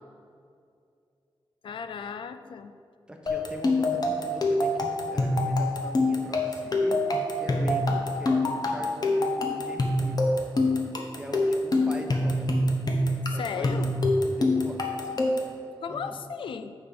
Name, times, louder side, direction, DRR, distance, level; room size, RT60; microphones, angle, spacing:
voice 1, 1.6-2.7 13.4-13.9 15.8-16.7, left 6 dB, 75° left, 10 dB, 0.4 m, -35 dB
voice 2, 3.1-7.0 7.4-10.2 11.1-12.5 13.3-13.9 14.2-15.2 15.9-16.2, equal, 10° right, 2 dB, 0.8 m, -41 dB
sound 1, 3.3-15.6, left 2 dB, 50° left, 0.9 m, -26 dB
6.1 x 4.8 x 5.7 m, 2.4 s
wide cardioid pair, 85°, 9 cm